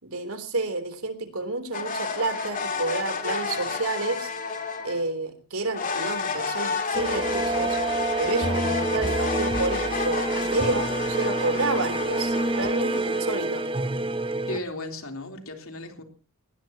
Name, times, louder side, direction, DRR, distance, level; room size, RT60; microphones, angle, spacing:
voice 1, 0.0-4.3 4.8-7.8 8.2-13.6, right 2 dB, 75° right, 8 dB, 3.6 m, -30 dB
sound 1, 1.7-5.1 5.7-13.9, left 5 dB, 35° left, 3.0 m, -31 dB
sound 2, 6.9-14.6, right 2 dB, 25° right, 0.9 m, -27 dB
voice 2, 14.5-16.0, left 1 dB, 70° left, 4 dB, 3.6 m, -35 dB
20.0 x 19.5 x 3.0 m, 0.35 s
head